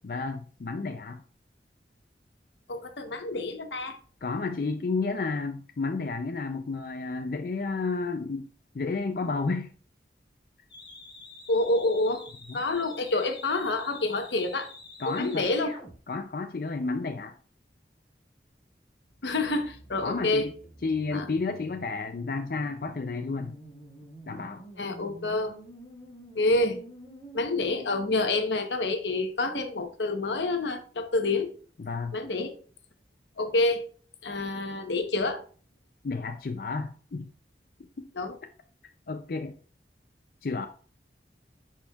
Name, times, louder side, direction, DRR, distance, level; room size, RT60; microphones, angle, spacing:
voice 1, 0.0-1.2 4.2-8.5 8.7-9.7 12.5-12.6 15.0-15.5 16.1-17.3 20.0-20.5 20.8-23.6 24.3-24.6 31.8-32.2 36.0-37.3 38.0-38.1 39.1-39.6 40.4-40.7, left 4 dB, 55° left, 5 dB, 0.4 m, -31 dB
voice 2, 2.7-4.0 11.5-12.2 12.5-14.7 15.0-15.7 19.2-20.5 21.1-21.3 24.8-25.5 26.3-26.8 27.3-31.5 32.1-32.5 33.4-33.8 34.2-35.4 38.1-38.4, left 2 dB, 85° left, 7 dB, 1.0 m, -28 dB
sound 1, 10.7-15.9 19.0-28.1, equal, 25° left, 1.8 m, -48 dB
10.0 x 4.4 x 2.4 m, 0.41 s
head